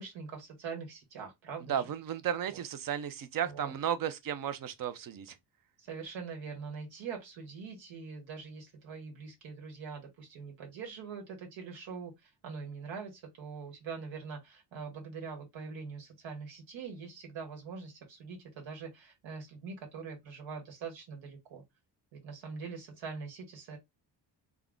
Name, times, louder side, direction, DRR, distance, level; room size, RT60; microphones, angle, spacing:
voice 1, 0.0-1.9 2.5-2.6 3.4-3.7 5.8-21.6 22.1-23.8, right 5 dB, 85° right, 1.3 m, -43 dB
voice 2, 1.7-5.3, right 9 dB, 50° right, 0.6 m, -34 dB
3.6 x 2.2 x 3.6 m
cardioid pair, 150°, 45 cm